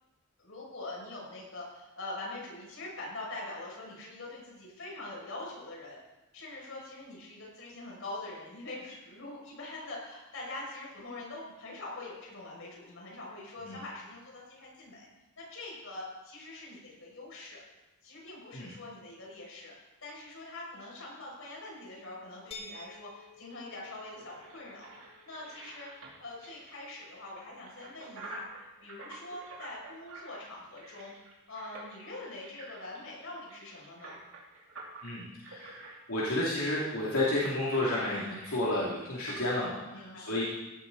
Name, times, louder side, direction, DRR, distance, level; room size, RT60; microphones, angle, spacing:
voice 1, 0.4-6.0 6.3-15.1 15.4-17.6 18.0-19.7 20.0-25.9 26.2-31.1 31.5-34.2 39.8-40.3, left 2 dB, 65° left, -3 dB, 6.2 m, -44 dB
sound 1, 22.5-28.3, left 3 dB, 25° left, 1.5 m, -53 dB
sound 2, 23.7-39.5, right 2 dB, 60° right, 3.2 m, -49 dB
voice 2, 35.0-40.4, left 1 dB, 85° left, -6 dB, 2.6 m, -31 dB
16.5 x 12.0 x 4.0 m, 1.1 s
head